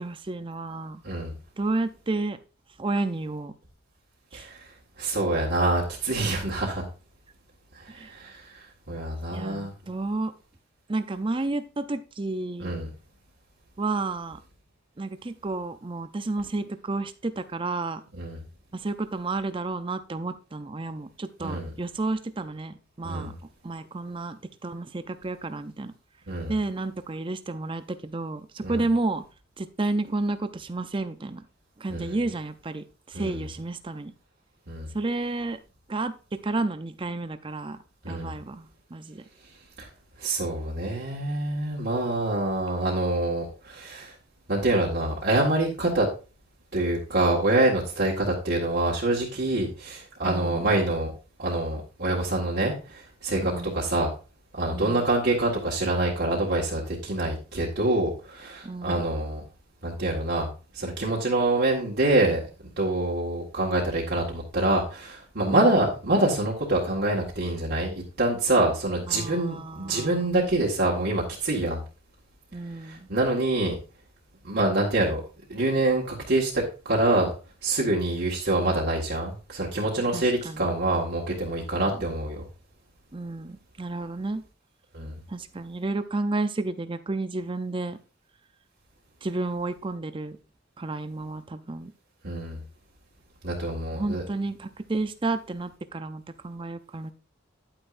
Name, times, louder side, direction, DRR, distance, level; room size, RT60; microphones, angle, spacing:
voice 1, 0.0-1.0 1.6-2.4 2.8-3.5 4.3-4.5 7.9-8.1 9.3-10.3 10.9-12.7 13.8-14.4 15.0-18.0 18.7-23.3 23.6-25.9 26.5-29.2 29.6-31.5 31.8-34.1 34.9-35.6 35.9-39.2 50.2-50.7 53.4-53.8 54.7-55.0 58.6-59.1 65.5-65.7 69.1-70.3 72.5-73.1 80.1-80.7 81.7-82.1 83.1-84.4 85.3-88.0 89.2-90.4 90.8-91.9 93.9-97.1, right 2 dB, 25° right, 11 dB, 0.5 m, -31 dB
voice 2, 4.3-4.7 5.0-6.9 7.8-8.5 8.9-9.7 12.6-12.9 18.2-18.4 21.4-21.7 23.0-23.3 26.3-26.5 28.6-28.8 31.9-32.2 33.1-33.4 34.7-34.9 38.0-38.3 39.8-39.9 40.2-44.1 44.5-46.1 46.7-51.1 51.4-54.1 54.5-59.4 59.8-60.5 60.7-62.4 62.8-67.9 68.2-71.8 72.8-73.7 74.4-75.2 75.5-77.3 77.6-82.5 84.9-85.2 92.2-92.6 93.4-94.2, right 2 dB, 55° right, -4 dB, 1.8 m, -26 dB
10.0 x 9.0 x 2.6 m, 0.33 s
head